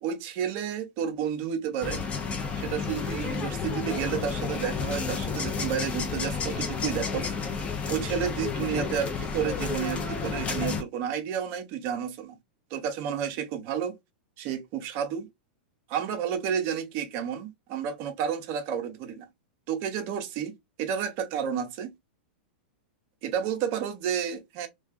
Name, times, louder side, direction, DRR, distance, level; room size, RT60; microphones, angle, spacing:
voice 1, 0.0-2.0 2.6-7.3 7.9-12.4 12.7-14.0 14.4-15.3 15.9-19.3 19.7-21.9 23.2-24.7, right 8 dB, 45° right, 0.7 m, -31 dB
sound 1, 1.8-10.8, left 5 dB, 25° left, 0.6 m, -31 dB
2.3 x 2.2 x 2.5 m
hypercardioid pair, 130°, 5 cm